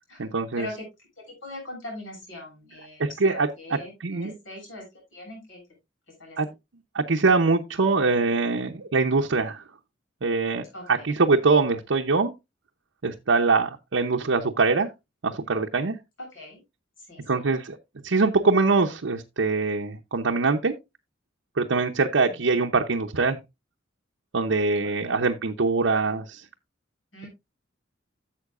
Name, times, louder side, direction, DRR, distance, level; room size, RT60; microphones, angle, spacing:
voice 1, 0.2-0.7 3.0-4.3 6.4-6.5 6.9-9.6 10.2-12.3 13.0-14.9 15.2-16.0 17.3-17.8 18.0-20.7 21.6-23.4 24.3-26.4, right 4 dB, 85° right, 0.8 m, -23 dB
voice 2, 1.4-4.8 5.1-5.6 6.2-6.4 10.7-11.1 16.2-16.6 17.1-17.5 22.2-22.6 24.8-25.3 27.1-27.3, left 1 dB, 85° left, 7.0 m, -41 dB
13.0 x 7.4 x 2.4 m
head